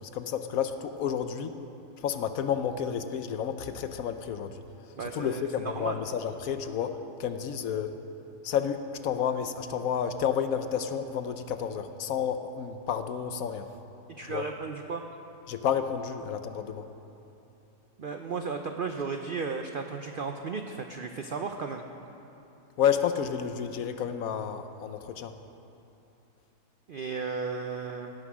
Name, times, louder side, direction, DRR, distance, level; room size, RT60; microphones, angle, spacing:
voice 1, 0.0-1.6 2.0-8.0 8.4-13.7 14.2-14.4 15.5-16.9 22.8-25.3, left 8 dB, 70° left, 9 dB, 1.0 m, -31 dB
voice 2, 5.0-6.0 14.1-15.0 18.0-21.8 26.9-28.1, right 5 dB, 70° right, 5 dB, 0.5 m, -34 dB
16.5 x 9.5 x 6.2 m, 2.9 s
omnidirectional pair, 1.7 m